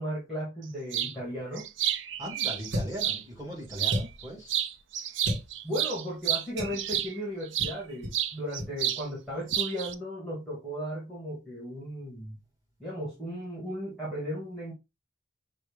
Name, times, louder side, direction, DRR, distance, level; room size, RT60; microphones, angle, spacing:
voice 1, 0.0-1.7 5.6-12.4 12.8-14.7, equal, ahead, 1.6 m, -36 dB
sound 1, 0.9-1.1 1.6-3.2 3.7-4.2 4.5-7.8 8.1-9.0 9.3-9.9, right 11 dB, 80° right, 0.5 m, -30 dB
voice 2, 2.2-4.5 5.0-5.2, equal, 20° right, 2.4 m, -39 dB
sound 2, 2.7-3.1 3.9-4.3 5.2-5.5 6.6-6.8 7.6-7.8 8.0-8.2 8.5-8.7, equal, 60° right, 1.6 m, -33 dB
5.5 x 2.6 x 3.4 m
head